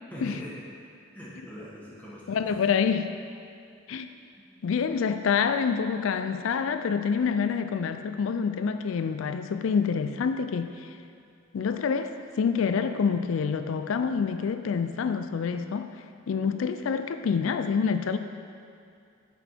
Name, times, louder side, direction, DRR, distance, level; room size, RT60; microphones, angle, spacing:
voice 1, 0.1-0.5 1.1-2.4 4.2-5.1, equal, 10° left, -8 dB, 1.4 m, -44 dB
voice 2, 2.3-3.1 3.9-4.1 4.6-10.9 11.5-15.9 16.3-18.2, left 6 dB, 80° left, 9 dB, 0.4 m, -27 dB
6.2 x 5.3 x 4.4 m, 2.5 s
head